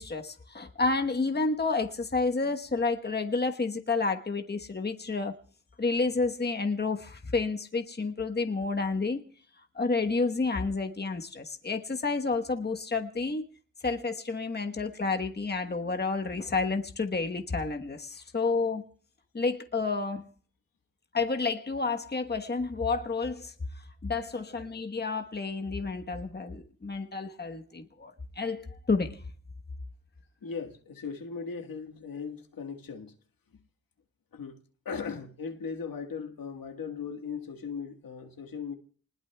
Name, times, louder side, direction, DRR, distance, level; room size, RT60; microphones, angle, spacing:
voice 1, 0.0-5.3 5.8-9.2 9.7-13.4 13.8-18.8 19.3-20.2 21.1-23.5 24.0-29.2, left 3 dB, 30° left, 1.2 m, -30 dB
voice 2, 30.4-33.1 34.3-34.6 34.8-38.7, left 5 dB, 90° left, 1.7 m, -38 dB
29.0 x 20.0 x 2.3 m
cardioid pair, 70°, 33 cm